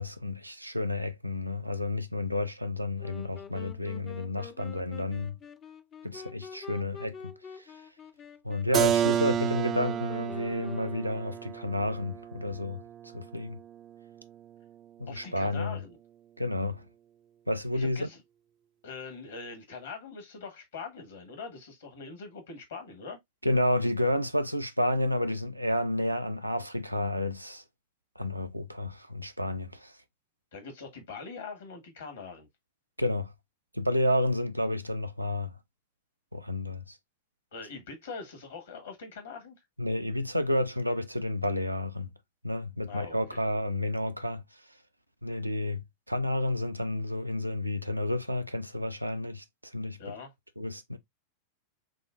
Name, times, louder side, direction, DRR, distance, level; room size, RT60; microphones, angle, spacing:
voice 1, 0.0-5.4 6.0-7.7 8.4-13.6 15.0-15.8 16.4-16.9 17.5-18.1 23.4-27.6 28.2-29.9 33.0-33.3 33.7-35.6 36.3-37.0 39.8-42.1 42.4-44.4 45.2-45.8 46.1-50.0 50.6-51.0, left 1 dB, 90° right, 0.5 m, -30 dB
sound 1, 3.0-11.4, left 7 dB, 25° left, 0.5 m, -47 dB
Keyboard (musical), 8.7-14.3, right 9 dB, 30° right, 0.3 m, -31 dB
voice 2, 15.1-16.0 17.7-18.2 18.8-23.2 30.5-32.5 37.5-39.5 42.9-43.4 50.0-50.3, left 4 dB, 65° left, 1.6 m, -42 dB
6.1 x 2.4 x 2.4 m
figure-of-eight pair, 90°, 0 cm